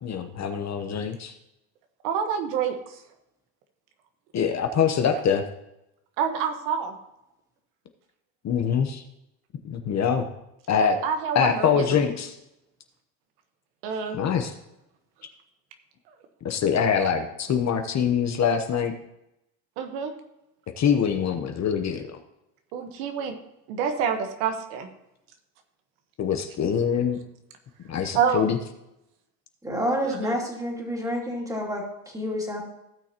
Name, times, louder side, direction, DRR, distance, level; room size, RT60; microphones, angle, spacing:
voice 1, 0.0-1.3 4.3-5.4 8.4-9.0 9.6-10.3 10.7-11.0 11.3-12.3 14.1-14.5 16.4-18.9 20.8-22.2 26.2-27.2 27.9-28.6, left 7 dB, 35° left, 6 dB, 0.9 m, -24 dB
voice 2, 2.0-2.8 6.2-6.9 11.0-11.9 13.8-14.2 19.8-20.1 22.7-23.3 23.7-24.9 28.1-28.5 30.0-30.3, right 7 dB, 85° right, 6 dB, 1.5 m, -27 dB
voice 3, 29.6-32.6, equal, 5° right, -1 dB, 2.5 m, -29 dB
16.5 x 6.2 x 3.0 m, 0.87 s
supercardioid pair, 115°, 47 cm